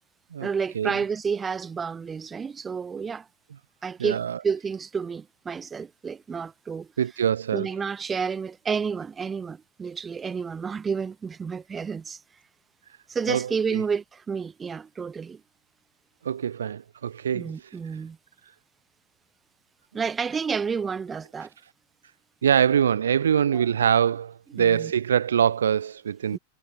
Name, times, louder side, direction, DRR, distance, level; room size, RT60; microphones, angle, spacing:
voice 1, 0.4-3.3 3.8-6.9 7.5-12.2 13.1-15.4 17.3-18.2 19.9-21.5 23.5-23.6 24.6-24.9 26.3-26.4, right 6 dB, 15° right, 7.8 m, -30 dB
voice 2, 4.0-4.4 7.0-7.7 13.3-13.8 16.2-17.5 22.4-26.4, right 8 dB, 65° right, 2.7 m, -24 dB
figure-of-eight pair, 90°, 0 cm